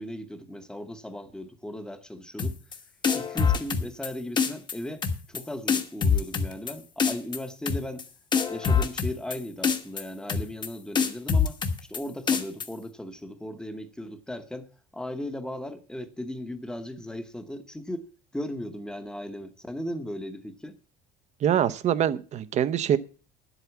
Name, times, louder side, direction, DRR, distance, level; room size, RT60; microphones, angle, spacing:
voice 1, 0.0-2.6 3.1-8.1 8.5-18.1 18.3-20.8, left 1 dB, 5° left, 1.0 m, -37 dB
sound 1, 2.4-2.8 3.0-4.1 4.4-4.7 5.0-5.4 5.7-6.7 7.0-7.4 7.7-8.0 8.3-9.4 9.6-10.0 10.3-10.7 11.0-12.0 12.3-12.7, left 6 dB, 25° left, 1.2 m, -24 dB
voice 2, 21.4-23.0, right 9 dB, 40° right, 0.7 m, -24 dB
10.5 x 8.0 x 7.1 m
cardioid pair, 160°, 19 cm